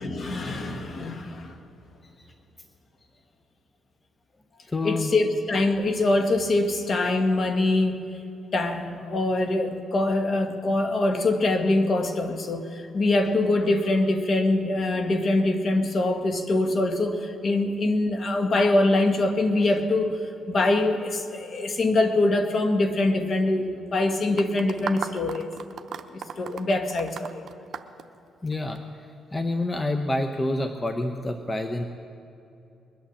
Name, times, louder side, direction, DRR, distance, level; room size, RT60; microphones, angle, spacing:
voice 1, 0.0-1.5 4.8-8.0 8.5-20.2 20.5-25.5 26.1-27.4, left 2 dB, 50° left, 5 dB, 1.5 m, -24 dB
voice 2, 4.7-5.1 28.4-28.8 29.3-31.8, left 2 dB, 20° left, 6 dB, 0.8 m, -27 dB
sound 1, 24.4-28.8, right 7 dB, 60° right, 0.8 m, -36 dB
21.5 x 8.8 x 7.1 m, 2.8 s
cardioid pair, 90°, 0 cm